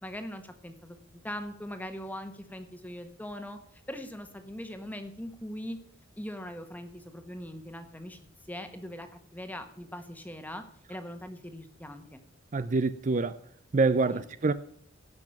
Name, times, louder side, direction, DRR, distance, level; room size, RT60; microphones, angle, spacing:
voice 1, 0.0-5.8 6.2-8.2 8.5-10.6 10.9-12.2 14.1-14.2, equal, 10° left, 1.4 m, -41 dB
voice 2, 12.5-13.4 13.7-14.5, right 3 dB, 40° right, 0.5 m, -26 dB
16.5 x 6.1 x 5.9 m
head